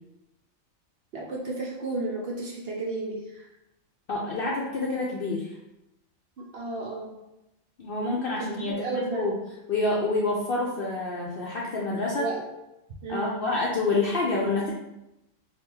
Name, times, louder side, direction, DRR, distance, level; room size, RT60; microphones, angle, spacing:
voice 1, 1.1-3.5 6.5-7.1 8.4-9.3 12.2-12.4 13.0-13.4, right 3 dB, 55° right, -2 dB, 0.8 m, -33 dB
voice 2, 4.1-5.6 7.8-9.4 9.7-12.3 13.1-14.7, left 3 dB, 60° left, -3 dB, 0.6 m, -27 dB
3.6 x 2.4 x 4.3 m, 0.91 s
omnidirectional pair, 1.4 m